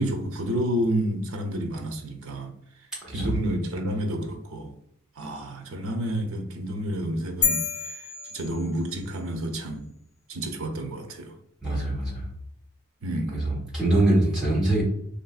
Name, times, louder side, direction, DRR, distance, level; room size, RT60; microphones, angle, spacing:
voice 1, 0.0-2.5 3.1-4.7 5.2-9.8 10.3-11.3 13.0-13.5, right 1 dB, 70° right, 0.6 m, -30 dB
sound 1, 7.4-9.1, left 6 dB, 75° left, 0.7 m, -29 dB
voice 2, 11.6-12.3 13.3-14.8, right 1 dB, 5° right, 1.1 m, -23 dB
3.1 x 2.6 x 2.3 m
head